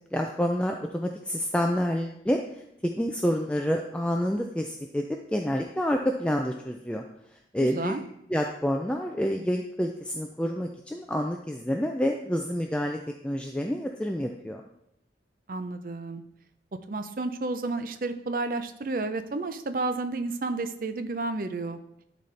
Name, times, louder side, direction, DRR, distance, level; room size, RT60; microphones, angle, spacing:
voice 1, 0.1-2.4 2.8-5.0 5.3-7.0 7.5-7.9 8.3-13.0 13.2-14.6, equal, 5° left, 2 dB, 0.3 m, -28 dB
voice 2, 7.6-8.0 15.5-16.2 16.9-21.8, right 3 dB, 50° right, 9 dB, 0.5 m, -31 dB
11.5 x 4.1 x 3.3 m, 0.78 s
head